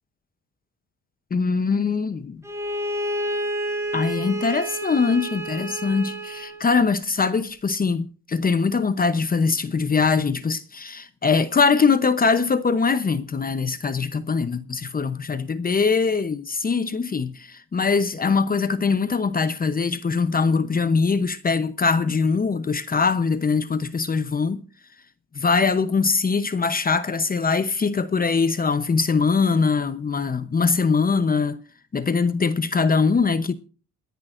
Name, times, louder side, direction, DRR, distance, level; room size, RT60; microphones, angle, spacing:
voice 1, 1.3-2.2 3.9-24.6 25.3-31.6 31.9-33.5, left 5 dB, 30° left, 0.8 m, -22 dB
Bowed string instrument, 2.4-6.6, right 1 dB, 10° right, 2.8 m, -29 dB
27.5 x 10.5 x 2.6 m
cardioid pair, 90°, 30 cm